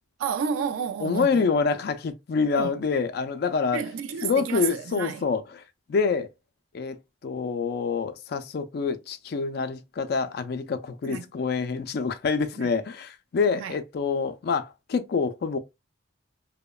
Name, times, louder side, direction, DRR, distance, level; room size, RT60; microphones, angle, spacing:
voice 1, 0.2-1.4 2.5-2.8 3.7-5.2 11.1-11.3 12.6-12.7 13.6-13.8, right 7 dB, 85° right, 0.3 m, -31 dB
voice 2, 1.0-3.8 4.2-5.6 5.9-6.3 6.7-15.6, left 5 dB, 50° left, 0.3 m, -26 dB
2.9 x 2.1 x 2.2 m
head